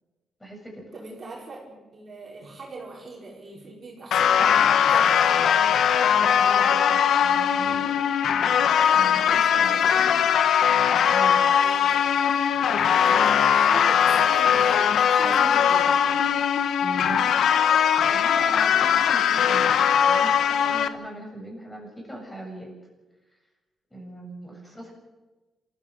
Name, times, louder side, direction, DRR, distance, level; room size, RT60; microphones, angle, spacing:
voice 1, 0.4-0.8 6.3-8.4 8.9-9.8 11.1-11.5 16.8-17.3 18.0-22.7 23.9-24.9, right 1 dB, 10° left, 0 dB, 7.6 m, -39 dB
voice 2, 0.9-5.4 8.8-10.3 11.6-12.0 12.7-15.9, right 3 dB, 40° right, -2 dB, 5.4 m, -40 dB
sound 1, 4.1-20.9, left 8 dB, 70° left, 1.3 m, -20 dB
27.0 x 15.0 x 7.8 m, 1.2 s
cardioid pair, 135°, 0 cm